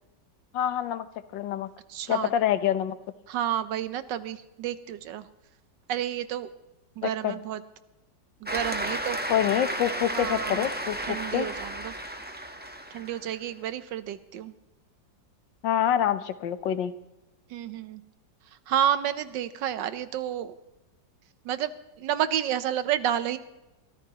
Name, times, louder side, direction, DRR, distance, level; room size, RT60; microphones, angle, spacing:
voice 1, 0.5-1.1 1.3-1.7 2.1-3.0 7.0-7.4 9.3-11.0 11.3-11.5 15.6-16.9, left 10 dB, 80° left, 13 dB, 1.5 m, -26 dB
voice 2, 1.9-2.3 3.3-5.3 5.9-6.5 7.0-7.6 8.4-9.2 10.1-10.7 11.0-11.9 12.9-14.5 17.5-18.0 18.7-20.5 21.4-21.7 22.0-23.4, right 10 dB, 80° right, 13 dB, 1.4 m, -30 dB
Cheering / Applause, 8.5-13.4, right 1 dB, 10° right, 0.7 m, -33 dB
24.0 x 14.0 x 2.9 m, 0.98 s
omnidirectional pair, 2.0 m